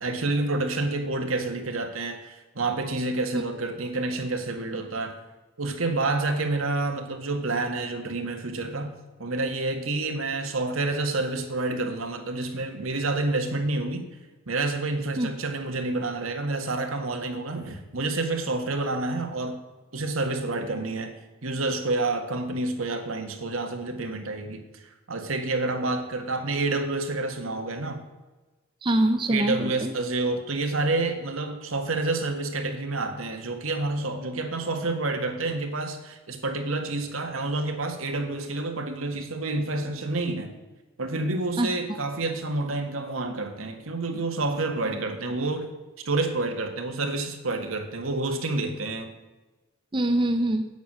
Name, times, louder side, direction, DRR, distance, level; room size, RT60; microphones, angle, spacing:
voice 1, 0.0-5.2 5.6-8.9 9.2-14.0 14.5-19.6 19.9-21.1 21.4-24.8 25.1-28.0 29.3-40.5 41.0-45.7 46.1-49.1, right 2 dB, 80° right, 5 dB, 1.7 m, -28 dB
voice 2, 28.8-29.9 41.6-41.7 49.9-50.7, right 1 dB, 25° right, 7 dB, 0.6 m, -24 dB
9.0 x 8.3 x 6.3 m, 1.2 s
head